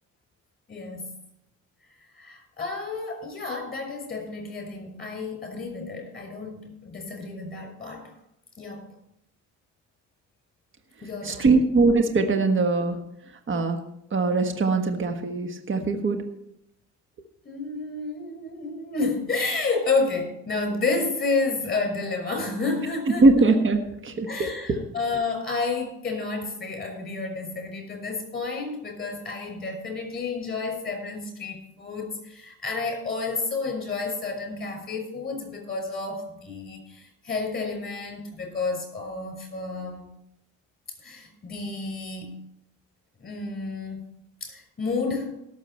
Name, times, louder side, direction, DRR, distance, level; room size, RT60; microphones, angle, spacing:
voice 1, 0.7-1.1 2.1-8.2 8.6-8.9 11.0-11.6 17.4-23.6 24.2-40.1 41.0-42.4 43.2-44.0 44.4-45.3, left 3 dB, 30° left, 3 dB, 6.0 m, -30 dB
voice 2, 11.3-13.0 13.5-13.8 14.1-16.2 23.2-24.3 24.7-24.8, right 3 dB, 40° right, 5 dB, 1.5 m, -21 dB
18.0 x 7.1 x 4.4 m, 0.78 s
cardioid pair, 90°, 30 cm